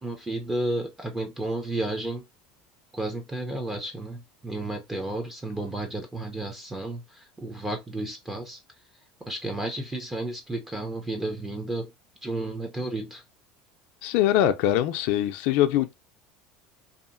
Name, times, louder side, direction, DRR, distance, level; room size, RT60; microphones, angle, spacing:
voice 1, 0.0-2.2 2.9-8.6 9.2-11.9 12.2-13.2, right 2 dB, 10° right, 0.5 m, -32 dB
voice 2, 14.0-15.9, left 12 dB, 65° left, 0.4 m, -23 dB
2.7 x 2.4 x 2.5 m
supercardioid pair, 130°, 2 cm